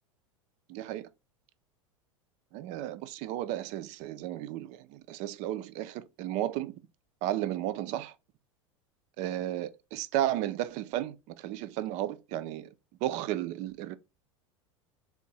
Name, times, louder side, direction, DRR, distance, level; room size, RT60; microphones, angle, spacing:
voice 1, 0.7-1.1 2.5-6.7 7.2-8.1 9.2-12.7 13.0-14.0, right 13 dB, 45° right, 0.5 m, -33 dB
3.7 x 3.6 x 3.9 m
figure-of-eight pair, 85°, 17 cm